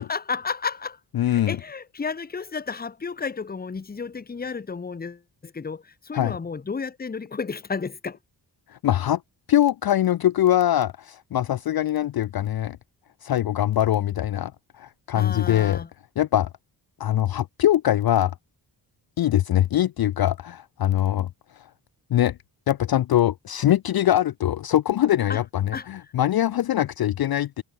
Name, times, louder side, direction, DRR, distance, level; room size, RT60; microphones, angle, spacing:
voice 1, 0.0-8.2 15.1-15.9 25.3-25.4 25.7-25.9, left 5 dB, 20° left, 0.8 m, -32 dB
voice 2, 1.1-1.6 6.1-6.4 8.8-9.2 9.5-12.8 13.2-14.5 14.8-15.8 16.2-16.5 17.0-18.3 19.2-21.3 22.1-22.4 22.7-27.6, left 12 dB, 55° left, 0.5 m, -22 dB
cardioid pair, 80°, 46 cm